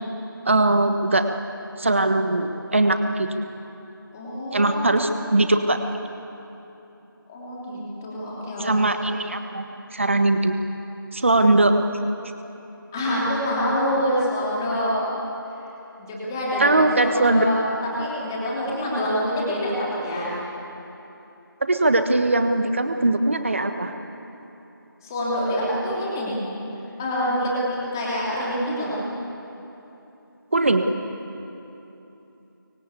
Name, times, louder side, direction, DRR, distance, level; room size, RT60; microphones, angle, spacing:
voice 1, 0.4-1.2 1.8-3.3 4.5-5.8 8.6-9.7 9.9-10.5 11.1-11.7 16.6-17.4 21.6-23.9 30.5-30.8, right 2 dB, 35° right, 7 dB, 1.3 m, -20 dB
voice 2, 4.1-5.5 7.3-8.8 12.9-14.9 16.0-16.7 17.0-17.6 18.0-20.3 25.0-26.4 27.0-28.9, equal, 10° left, -6 dB, 3.0 m, -26 dB
25.0 x 24.0 x 8.4 m, 3.0 s
figure-of-eight pair, 175°, 12 cm